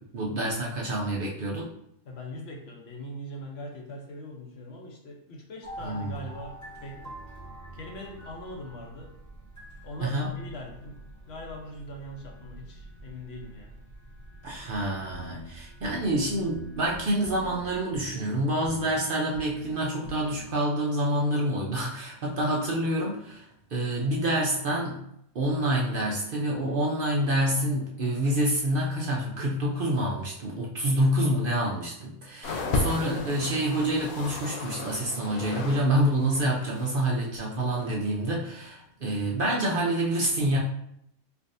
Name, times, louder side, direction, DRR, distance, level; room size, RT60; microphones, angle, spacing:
voice 1, 0.1-1.7 5.8-6.1 10.0-10.3 14.4-25.0 25.3-40.6, right 1 dB, 60° right, -3 dB, 0.5 m, -27 dB
voice 2, 2.0-7.1 7.7-9.1 9.8-11.0 11.3-13.8, left 1 dB, 55° left, 1 dB, 0.9 m, -41 dB
sound 1, 5.6-17.9, right 1 dB, 15° left, 0.7 m, -47 dB
sound 2, 15.1-15.5 15.8-16.2 16.5-16.9 17.2-17.6 17.9-18.3 18.6-19.0 19.3-19.7 20.0-20.4, right 1 dB, 75° right, 1.1 m, -41 dB
sound 3, 32.4-35.9 36.1-37.0 37.8-37.9, left 3 dB, 85° left, 1.1 m, -33 dB
4.6 x 2.5 x 2.6 m, 0.74 s
omnidirectional pair, 1.5 m